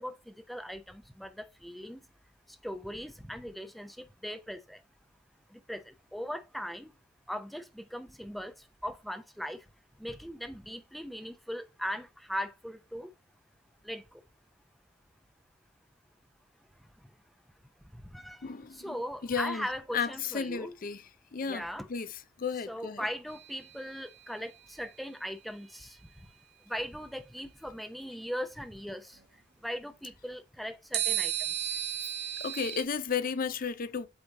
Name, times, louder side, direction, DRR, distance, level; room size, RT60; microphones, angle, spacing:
voice 1, 0.0-2.0 2.6-4.8 5.5-6.9 7.3-8.5 8.8-9.6 10.0-13.1 13.8-14.0 18.0-18.5 18.7-20.7 21.4-21.9 22.7-26.0 26.7-29.2 29.6-31.3 31.6-31.8, equal, ahead, 0.6 m, -39 dB
voice 2, 18.4-19.0 19.2-19.7 19.9-21.0 21.3-21.6 21.9-22.1 22.4-23.0 32.4-34.1, left 6 dB, 50° left, 0.5 m, -33 dB
sound 1, 23.3-24.5 30.9-32.8, right 12 dB, 60° right, 1.0 m, -34 dB
8.1 x 3.0 x 4.0 m
head